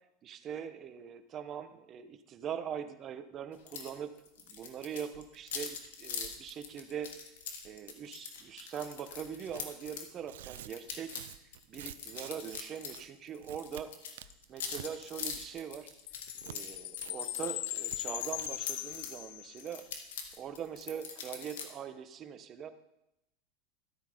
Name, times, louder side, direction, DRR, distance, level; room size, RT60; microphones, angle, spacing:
voice 1, 0.2-4.1 4.4-5.1 5.4-7.1 7.6-11.2 11.7-13.9 14.5-15.9 16.4-19.8 20.4-22.7, right 8 dB, 35° right, 9 dB, 1.1 m, -42 dB
sound 1, 3.7-3.9 4.2-10.1 10.5-13.0 13.3-19.1 19.6-21.7, left 6 dB, 90° left, 2.0 m, -43 dB
Tearing, 9.5-9.7 10.2-12.6 12.9-13.1 13.4-13.8 14.2-14.9 15.2-15.6 15.9-16.6 17.0-17.1 17.4-17.5 17.9-18.0 18.3-18.5, right 13 dB, 85° right, 0.6 m, -48 dB
Chime, 16.1-19.8, left 18 dB, 70° left, 0.4 m, -39 dB
13.5 x 9.0 x 5.2 m, 0.86 s
supercardioid pair, 120°, 0 cm